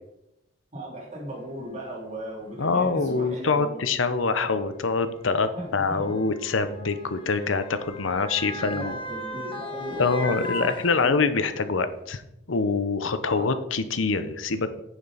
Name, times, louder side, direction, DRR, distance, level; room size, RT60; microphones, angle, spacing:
voice 1, 0.7-3.8 5.5-6.0 8.6-10.7 11.0-11.1 13.4-13.5, equal, 35° right, -5 dB, 3.6 m, -37 dB
Motor vehicle (road) / Siren, 1.6-1.7 2.7-2.9 3.9-11.5 12.0-12.1, left 1 dB, 25° left, 1.1 m, -38 dB
voice 2, 2.6-9.0 10.0-12.2 12.5-14.8, left 4 dB, 85° left, 11 dB, 0.8 m, -25 dB
9.3 x 7.4 x 4.1 m, 0.86 s
head